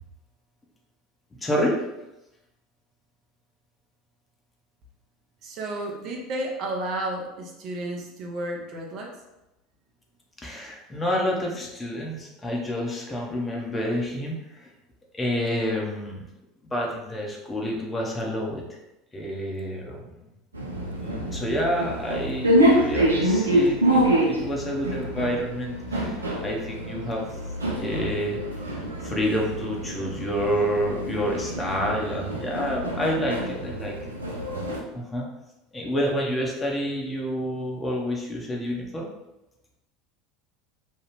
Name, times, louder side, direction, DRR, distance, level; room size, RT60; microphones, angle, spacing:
voice 1, 1.4-1.8 10.4-14.7 15.1-16.2 16.6-18.6 19.1-20.2 20.9-27.2 27.8-28.4 29.0-34.0 34.9-35.3 35.7-39.1, equal, 20° left, -1 dB, 0.8 m, -28 dB
voice 2, 5.4-9.1, right 1 dB, 50° right, 0 dB, 0.7 m, -32 dB
sound 1, 20.5-34.8, right 1 dB, 85° right, 0.5 m, -26 dB
3.1 x 2.3 x 3.4 m, 0.94 s
figure-of-eight pair, 75°, 0 cm